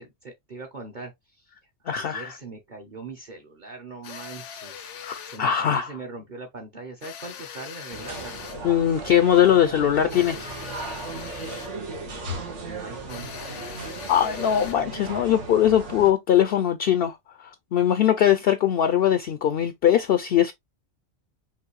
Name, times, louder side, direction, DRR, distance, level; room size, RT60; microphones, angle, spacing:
voice 1, 0.0-1.5 1.8-5.0 5.2-8.3 12.3-13.3, right 3 dB, 45° right, 1.1 m, -41 dB
voice 2, 1.9-2.3 5.0-5.9 8.6-10.5 10.8-10.9 14.1-20.5, left 10 dB, 65° left, 0.7 m, -21 dB
sound 1, 4.0-5.5 7.0-8.7 10.1-11.8 13.1-14.9, left 8 dB, 85° left, 1.0 m, -41 dB
sound 2, 7.9-16.1, right 2 dB, 80° right, 1.7 m, -36 dB
5.7 x 2.6 x 3.1 m
omnidirectional pair, 1.2 m